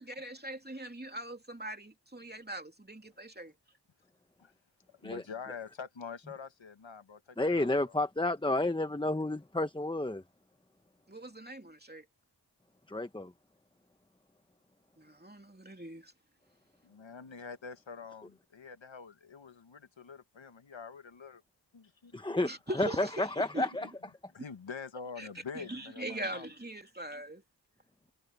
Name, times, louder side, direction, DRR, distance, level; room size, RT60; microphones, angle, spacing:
voice 1, 0.0-3.5 11.1-12.0 15.0-16.1 22.4-23.7 25.2-25.3 25.5-27.4, right 1 dB, 20° right, 2.8 m, -41 dB
voice 2, 4.9-7.9 16.8-21.4 21.7-22.4 23.8-23.9 24.3-26.5, left 5 dB, 85° left, 1.3 m, -46 dB
voice 3, 7.4-10.2 12.9-13.3 22.1-22.5 22.8-23.9, left 2 dB, 10° left, 0.9 m, -31 dB
wide cardioid pair, 50°, 44 cm